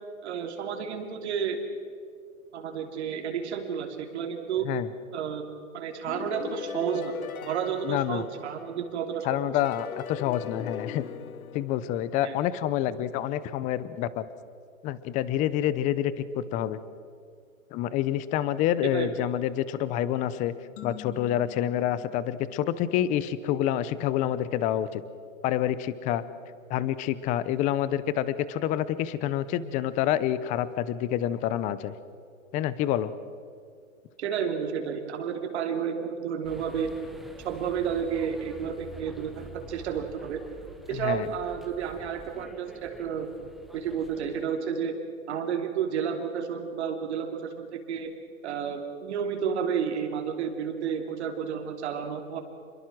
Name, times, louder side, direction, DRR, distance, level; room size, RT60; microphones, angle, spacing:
voice 1, 0.2-1.6 2.5-4.7 5.1-5.5 5.7-7.1 7.4-9.5 12.2-12.4 18.9-19.1 34.2-36.9 37.4-40.4 40.9-43.3 43.7-45.0 45.3-48.1 48.4-52.4, right 7 dB, 50° right, 4 dB, 3.1 m, -31 dB
sound 1, 6.1-8.9 9.6-12.4, left 9 dB, 85° left, 1.0 m, -40 dB
voice 2, 7.8-8.2 9.2-11.0 11.5-14.2 14.8-16.8 17.7-20.5 20.8-25.0 25.4-26.2 26.7-31.9 32.5-33.1 40.9-41.3, left 11 dB, 20° left, 16 dB, 0.7 m, -27 dB
sound 2, 20.8-23.4, left 11 dB, 40° left, 2.7 m, -47 dB
sound 3, 36.4-44.4, right 2 dB, ahead, 1.2 m, -48 dB
28.5 x 23.0 x 6.2 m, 2.4 s
hypercardioid pair, 140°, 41 cm